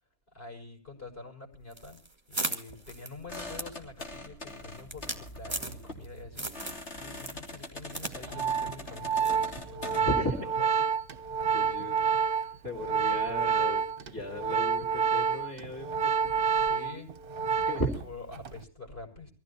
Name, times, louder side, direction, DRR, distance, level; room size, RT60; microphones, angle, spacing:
voice 1, 0.3-2.0 2.3-10.1 11.2-11.4 12.3-13.0 16.6-19.3, left 3 dB, 60° left, 2 dB, 6.2 m, -47 dB
sound 1, 1.7-6.1 6.4-6.9 7.2-8.2 8.4-8.5 9.2-9.4, right 2 dB, 25° right, 1.9 m, -37 dB
sound 2, 3.3-10.0, left 2 dB, 85° left, 3.7 m, -43 dB
Organ, 8.0-18.1 18.3-18.6, right 6 dB, 55° right, 1.0 m, -28 dB
voice 2, 9.9-10.5 11.5-12.0 12.6-16.1 17.5-17.9, equal, 20° left, -2 dB, 3.2 m, -35 dB
24.0 x 15.5 x 2.8 m, 0.38 s
omnidirectional pair, 1.1 m